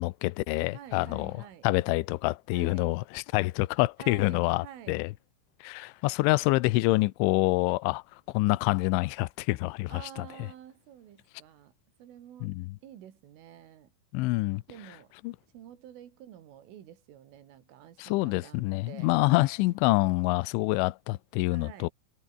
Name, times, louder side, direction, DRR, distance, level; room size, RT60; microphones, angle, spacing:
voice 1, 0.0-1.3 1.6-5.1 5.6-8.0 8.3-10.3 12.4-12.7 14.1-14.6 15.2-15.3 18.0-21.9, left 21 dB, 80° left, 3.1 m, -26 dB
voice 2, 0.7-1.7 2.5-3.0 4.0-5.0 9.9-11.7 12.0-12.6 12.8-13.9 14.7-15.1 15.5-19.1 21.5-21.9, right 10 dB, 80° right, 5.2 m, -49 dB
omnidirectional pair, 5.7 m